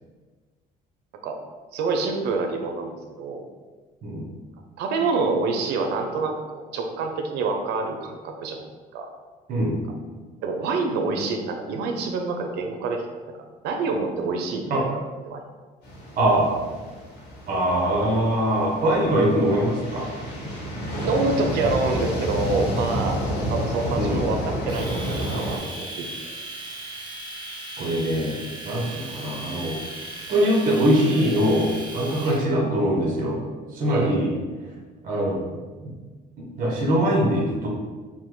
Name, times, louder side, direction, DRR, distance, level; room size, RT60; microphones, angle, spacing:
voice 1, 1.7-3.5 4.8-8.6 8.9-9.1 10.4-13.0 13.6-14.9 15.3-15.4 21.0-23.2 23.5-26.1 33.9-34.2, right 3 dB, 80° right, 4 dB, 0.6 m, -27 dB
voice 2, 9.5-9.8 14.7-14.8 16.2-16.5 17.5-20.1 23.9-24.2 27.8-29.8 30.3-31.7 31.9-33.4 33.7-34.3 35.0-35.4 36.4-37.7, right 1 dB, 55° right, -2 dB, 1.0 m, -22 dB
sound 1, 15.8-25.6, equal, 80° left, 1.5 m, -30 dB
Domestic sounds home sounds, 24.7-32.4, right 2 dB, 25° right, 0.9 m, -37 dB
5.4 x 2.2 x 3.1 m, 1.4 s
cardioid pair, 110°, 17 cm